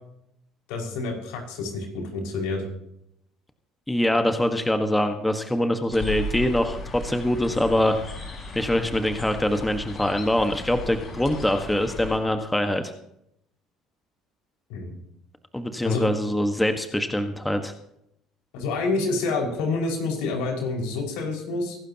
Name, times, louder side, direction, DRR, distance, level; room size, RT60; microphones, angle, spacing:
voice 1, 0.7-2.6 14.7-14.9 15.8-16.0 18.5-21.8, left 3 dB, 80° left, 1 dB, 5.5 m, -28 dB
voice 2, 3.9-8.0 8.5-12.9 15.5-17.7, left 1 dB, 5° left, 7 dB, 1.4 m, -24 dB
sound 1, 5.9-12.2, left 2 dB, 40° left, 5.7 m, -36 dB
24.0 x 11.5 x 2.9 m, 0.76 s
supercardioid pair, 85°, 0 cm